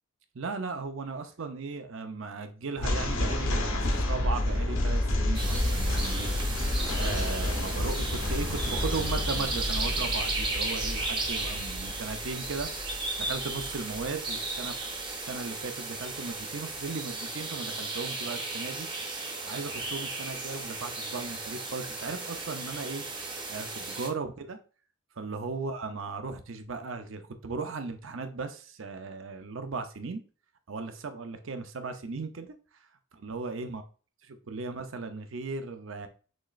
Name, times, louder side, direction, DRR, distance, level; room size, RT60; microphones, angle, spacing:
voice 1, 0.3-6.3 6.9-12.7 13.2-14.7 15.2-18.9 19.5-23.0 23.5-24.6 25.2-30.2 30.7-32.6 33.1-33.8 34.3-36.1, right 4 dB, 70° right, 8 dB, 0.6 m, -37 dB
sound 1, 2.8-14.1, left 1 dB, 75° left, 0.9 m, -30 dB
sound 2, 5.3-24.1, right 3 dB, 25° right, 0.8 m, -35 dB
6.2 x 3.1 x 2.4 m, 0.38 s
head